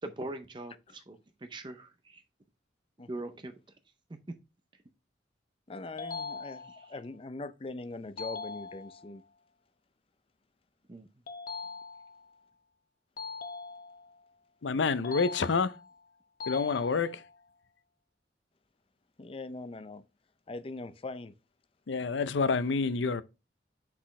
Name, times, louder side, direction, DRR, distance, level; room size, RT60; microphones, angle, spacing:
voice 1, 0.0-2.2 3.1-3.6 4.1-4.3 4.7-4.8 6.7-7.0 10.9-11.1, right 2 dB, 25° right, 0.5 m, -42 dB
voice 2, 5.7-9.2 19.2-20.0 20.5-21.3, left 2 dB, 30° left, 0.5 m, -41 dB
sound 1, 6.0-7.0 8.2-9.2 11.3-12.3 13.2-14.2 15.0-15.9 16.4-17.4, left 4 dB, 50° left, 0.9 m, -41 dB
voice 3, 14.6-15.7 16.5-17.2 21.9-23.2, left 4 dB, 80° left, 0.5 m, -28 dB
6.1 x 6.0 x 3.1 m
head